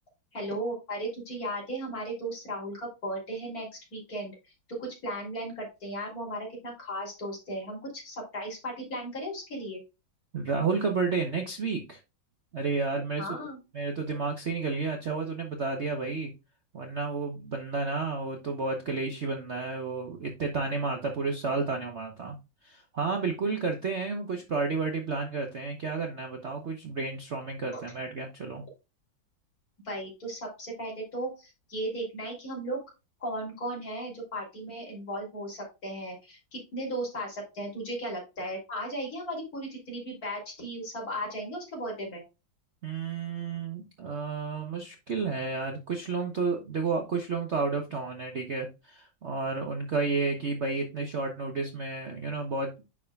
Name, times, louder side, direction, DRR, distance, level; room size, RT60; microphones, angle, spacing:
voice 1, 0.3-4.3 4.7-9.8 13.2-13.6 27.7-27.8 29.8-32.8 33.2-42.2, right 1 dB, 45° left, -2 dB, 3.7 m, -36 dB
voice 2, 10.3-12.0 12.5-13.3 13.7-16.3 16.7-22.4 22.6-28.6 42.8-52.7, right 4 dB, 45° right, 3 dB, 1.0 m, -31 dB
9.7 x 4.9 x 2.3 m, 0.26 s
omnidirectional pair, 2.2 m